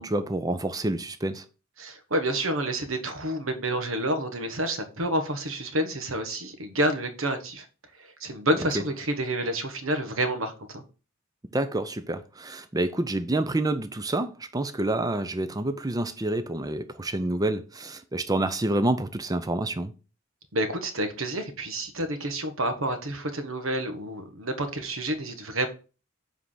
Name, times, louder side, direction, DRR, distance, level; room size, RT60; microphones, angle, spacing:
voice 1, 0.0-1.4 11.5-19.9, right 2 dB, 15° right, 0.5 m, -28 dB
voice 2, 1.8-7.7 8.2-10.8 20.5-25.7, right 1 dB, 70° right, 1.2 m, -29 dB
7.4 x 3.4 x 5.7 m
head